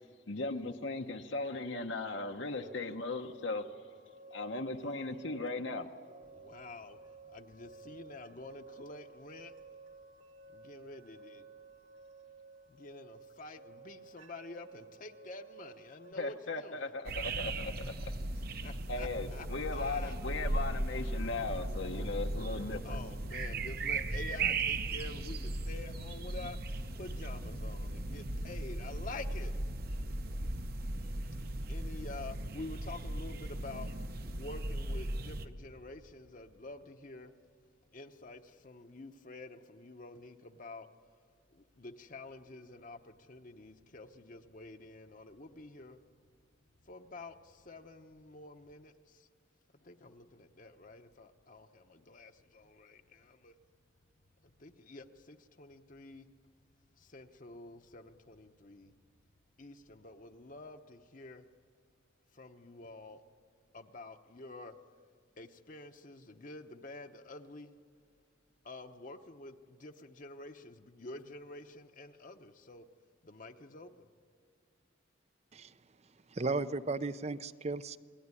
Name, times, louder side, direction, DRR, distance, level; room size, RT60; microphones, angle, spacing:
voice 1, 0.3-3.7 4.3-5.9 16.2-18.1 18.5-23.0, left 3 dB, 70° left, 1.1 m, -38 dB
sound 1, 2.6-16.1, right 4 dB, 90° right, 2.8 m, -55 dB
voice 2, 6.3-7.0 7.3-9.5 10.5-11.5 12.7-16.9 18.3-19.5 19.7-20.1 22.8-26.6 26.9-37.3 37.9-40.9 41.5-46.0 46.8-49.3 49.8-53.6 54.4-56.3 57.0-58.9 59.6-61.5 62.3-63.2 63.7-64.8 65.4-67.7 68.6-72.8 73.2-74.1, left 2 dB, 40° left, 1.0 m, -49 dB
sound 2, 17.1-35.5, right 2 dB, 50° right, 1.1 m, -37 dB
voice 3, 76.3-78.0, right 3 dB, 35° right, 0.6 m, -35 dB
28.0 x 20.0 x 9.8 m
head